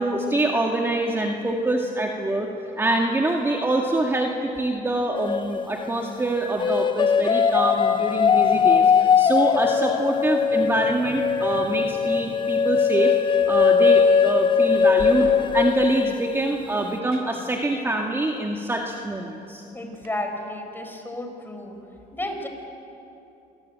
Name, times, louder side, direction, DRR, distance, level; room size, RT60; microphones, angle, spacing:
voice 1, 0.0-2.5 2.8-19.6, right 2 dB, 15° right, 1 dB, 2.0 m, -25 dB
sound 1, 5.2-5.9 6.6-16.6, left 6 dB, 30° left, 0.6 m, -20 dB
Beer Bottle Falling Down - Over, 14.9-20.1, right 4 dB, 90° right, 3.8 m, -46 dB
voice 2, 19.7-21.8 22.1-22.5, left 1 dB, 10° left, 4 dB, 4.9 m, -32 dB
27.0 x 20.5 x 9.2 m, 2.8 s
cardioid pair, 110°, 17 cm